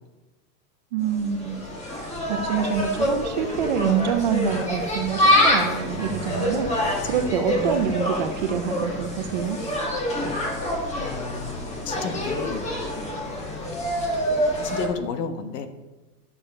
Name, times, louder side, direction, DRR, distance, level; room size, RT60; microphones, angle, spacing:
voice 1, 0.9-1.6 2.0-9.6, right 7 dB, 30° right, 7 dB, 0.5 m, -26 dB
Insect, 1.0-14.9, left 1 dB, 15° left, 1.6 m, -26 dB
voice 2, 6.0-7.2 7.5-7.9 10.4-10.6 11.0-12.7 14.6-15.7, left 5 dB, 75° left, 8 dB, 1.5 m, -33 dB
12.0 x 7.0 x 5.4 m, 1.1 s
supercardioid pair, 160°, 49 cm